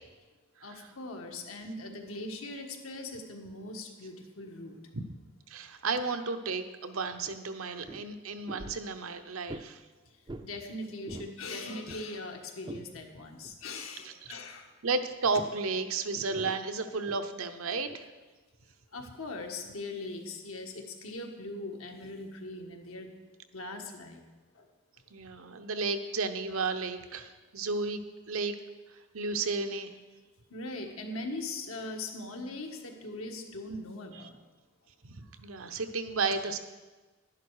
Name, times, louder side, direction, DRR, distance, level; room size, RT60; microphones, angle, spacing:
voice 1, 0.6-4.8 10.4-14.7 18.9-23.1 23.5-24.2 24.5-24.7 30.5-34.4, left 2 dB, 85° left, 3 dB, 1.5 m, -40 dB
voice 2, 5.5-9.8 14.8-18.1 25.1-28.0 28.3-28.6 29.1-29.9 35.0-36.6, right 4 dB, 85° right, 8 dB, 0.8 m, -33 dB
sound 1, 7.2-7.3 7.6-8.1 8.5-8.9 9.5-9.7 10.3-10.5 10.9-11.4 11.7-12.9 13.4-13.6 15.3-15.7 16.2-17.2 17.9-18.0, right 2 dB, 20° right, 0.4 m, -44 dB
11.5 x 11.0 x 4.8 m, 1.3 s
head